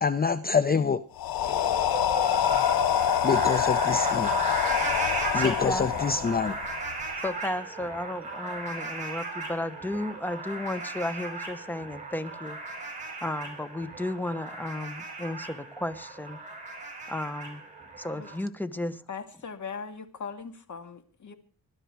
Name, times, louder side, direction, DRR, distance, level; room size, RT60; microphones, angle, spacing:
voice 1, 0.0-1.0 2.5-2.6 3.2-4.4 5.3-6.6, left 5 dB, 25° left, 14 dB, 0.6 m, -26 dB
sound 1, 1.2-7.1, left 11 dB, 80° left, 0.7 m, -26 dB
sound 2, 1.3-18.4, right 3 dB, 20° right, 6.8 m, -35 dB
voice 2, 5.3-5.9 7.2-12.6 12.8-13.0 13.2-16.4 17.1-17.6 18.0-19.0, left 1 dB, 5° left, 13 dB, 1.1 m, -34 dB
voice 3, 19.1-21.3, left 5 dB, 55° left, 8 dB, 2.1 m, -39 dB
21.0 x 12.0 x 4.7 m, 0.43 s
cardioid pair, 100°, 35 cm